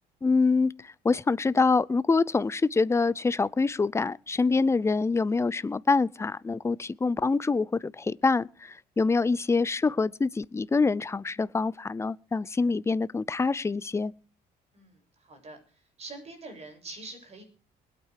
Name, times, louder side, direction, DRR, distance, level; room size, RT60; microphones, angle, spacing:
voice 1, 0.2-14.1, left 4 dB, 15° left, 0.6 m, -25 dB
voice 2, 14.7-17.4, right 2 dB, 40° right, 7.7 m, -45 dB
21.5 x 9.0 x 4.7 m
cardioid pair, 110°, 17 cm